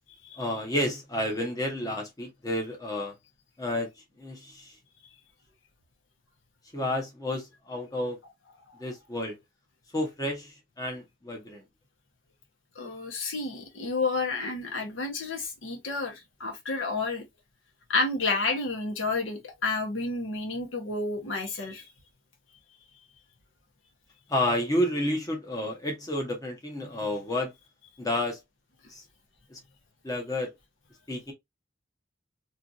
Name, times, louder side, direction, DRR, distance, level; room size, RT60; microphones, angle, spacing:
voice 1, 0.4-3.1 3.6-3.9 4.2-4.8 6.7-8.2 8.8-9.4 9.9-11.6 24.3-27.5 28.0-28.4 28.9-29.0 29.5-29.6 30.0-30.5 31.1-31.3, left 1 dB, 20° left, 0.8 m, -30 dB
voice 2, 12.8-17.2 17.9-21.8, left 3 dB, 85° left, 0.9 m, -30 dB
2.8 x 2.5 x 2.5 m
head